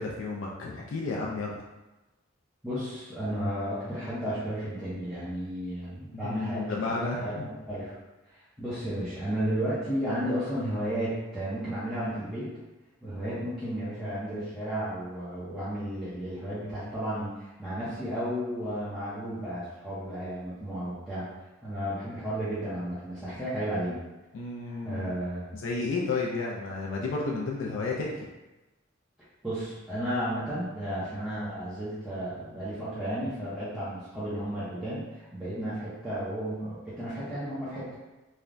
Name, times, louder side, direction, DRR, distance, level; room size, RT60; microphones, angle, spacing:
voice 1, 0.0-1.6 6.2-7.5 24.3-25.2 25.5-28.1, left 3 dB, 70° left, -2 dB, 0.3 m, -32 dB
voice 2, 2.6-8.0 8.3-12.5 13.0-21.3 21.6-24.0 24.8-25.5 29.4-37.9, equal, 5° right, -13 dB, 0.6 m, -33 dB
3.2 x 2.1 x 2.4 m, 1.1 s
head